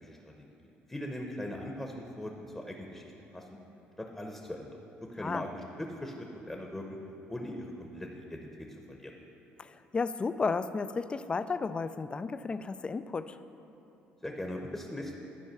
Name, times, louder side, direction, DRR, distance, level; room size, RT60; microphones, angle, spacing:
voice 1, 0.0-3.5 4.0-4.8 5.1-5.5 5.8-6.8 7.3-9.1 14.2-15.2, left 1 dB, 10° left, 1 dB, 0.8 m, -40 dB
voice 2, 9.6-13.4, left 4 dB, 25° left, 12 dB, 0.3 m, -33 dB
12.0 x 4.6 x 5.9 m, 3.0 s
cardioid pair, 100°, 4 cm